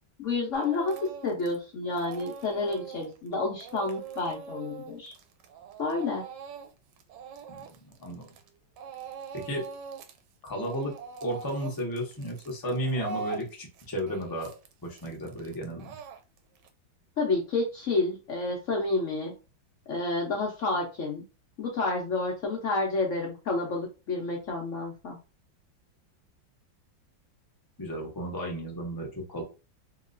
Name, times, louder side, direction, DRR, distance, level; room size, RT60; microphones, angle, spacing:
voice 1, 0.2-5.1 5.8-6.2 17.2-19.3 19.9-21.2 21.6-25.2, left 3 dB, 70° left, -1 dB, 0.7 m, -30 dB
Speech / Crying sobbing, 0.5-1.6 1.9-8.5 8.8-10.2 10.5-16.7, right 6 dB, 75° right, 1.1 m, -42 dB
voice 2, 9.3-9.6 10.4-10.9 11.2-14.5 14.8-16.0 27.8-29.4, equal, 30° left, -1 dB, 0.4 m, -33 dB
2.9 x 2.9 x 2.5 m, 0.32 s
omnidirectional pair, 2.1 m